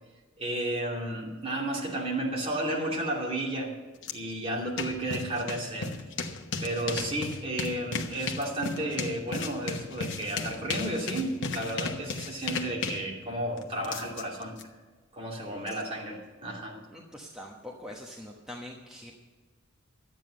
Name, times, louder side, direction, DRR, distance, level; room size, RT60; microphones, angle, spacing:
voice 1, 0.4-3.7 4.1-5.9 6.6-14.6 15.1-16.8, right 1 dB, 30° right, -2 dB, 2.7 m, -32 dB
sound 1, 4.0-4.1 4.5-14.6, left 4 dB, 60° left, 1.1 m, -35 dB
voice 2, 16.9-19.1, left 1 dB, 5° right, -2 dB, 1.1 m, -43 dB
12.5 x 9.1 x 6.4 m, 1.4 s
head